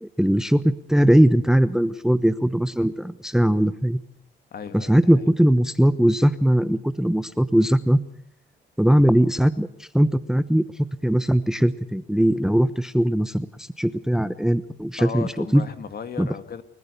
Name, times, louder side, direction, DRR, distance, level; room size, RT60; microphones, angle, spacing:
voice 1, 0.0-4.0 4.7-8.0 8.8-10.6 11.0-15.6 16.2-16.3, equal, 5° right, 1.0 m, -20 dB
voice 2, 4.5-5.3 15.0-16.6, left 6 dB, 50° left, 2.2 m, -35 dB
30.0 x 15.0 x 6.9 m
cardioid pair, 90°, 20 cm